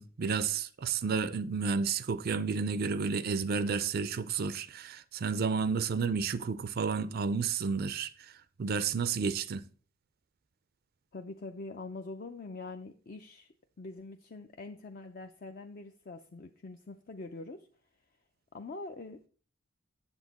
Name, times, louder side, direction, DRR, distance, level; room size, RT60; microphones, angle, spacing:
voice 1, 0.0-8.3 8.6-9.6, right 5 dB, 45° right, 0.4 m, -31 dB
voice 2, 11.1-17.7 18.5-19.3, left 3 dB, 40° left, 0.5 m, -44 dB
8.0 x 7.3 x 4.1 m
head